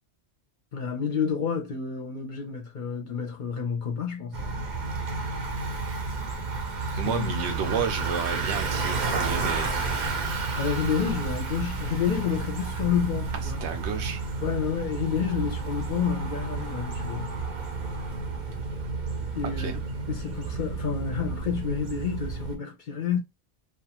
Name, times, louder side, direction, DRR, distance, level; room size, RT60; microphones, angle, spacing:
voice 1, 0.7-4.5 7.0-7.5 10.2-13.6 14.4-17.3 19.3-19.8 20.1-23.2, left 7 dB, 55° left, 0.7 m, -29 dB
Bicycle, 4.3-22.6, right 3 dB, 50° right, 0.7 m, -31 dB
voice 2, 7.0-9.8 13.4-14.2 19.4-19.8, right 7 dB, 80° right, 0.9 m, -31 dB
2.4 x 2.4 x 2.8 m
omnidirectional pair, 1.1 m